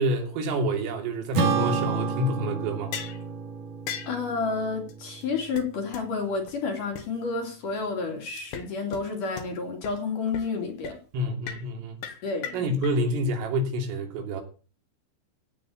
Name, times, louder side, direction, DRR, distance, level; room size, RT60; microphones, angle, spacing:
voice 1, 0.0-2.9 11.1-12.0 12.5-14.4, equal, 90° right, 5.4 m, -28 dB
Acoustic guitar / Strum, 1.3-6.1, right 5 dB, 50° right, 3.5 m, -30 dB
sound 1, 2.9-3.2 3.9-4.2 4.9-5.0 5.2-5.3 5.6-5.7 5.9-6.0 6.5-6.6 7.0-7.1 8.4-8.7 8.9-9.0 9.4-9.5 9.8-9.9 10.3-10.6 10.8-11.0 11.5-11.7 12.0-12.9, left 8 dB, 65° left, 3.5 m, -36 dB
voice 2, 4.0-11.0 12.2-12.7, left 4 dB, 50° left, 3.5 m, -30 dB
16.5 x 6.1 x 8.4 m
omnidirectional pair, 5.7 m